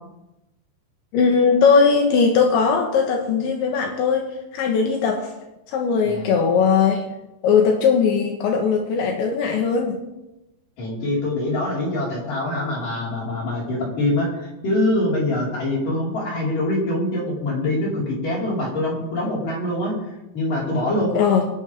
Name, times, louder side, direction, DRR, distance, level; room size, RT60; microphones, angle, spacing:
voice 1, 1.1-5.3 5.7-7.0 7.4-10.0 21.1-21.5, left 5 dB, 75° left, 2 dB, 3.6 m, -19 dB
voice 2, 10.8-19.9 20.3-21.2, left 1 dB, 45° left, -5 dB, 6.2 m, -24 dB
26.0 x 11.5 x 3.6 m, 0.96 s
omnidirectional pair, 5.6 m